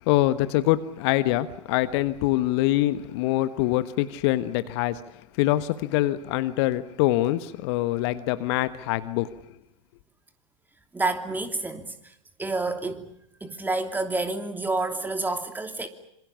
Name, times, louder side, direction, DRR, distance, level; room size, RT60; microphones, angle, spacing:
voice 1, 0.1-5.0 5.4-9.3, left 16 dB, 50° left, 1.3 m, -24 dB
voice 2, 10.9-12.1 12.4-13.1 13.4-15.9, right 2 dB, 10° right, 3.0 m, -29 dB
26.5 x 26.0 x 7.1 m
figure-of-eight pair, 85°, 17 cm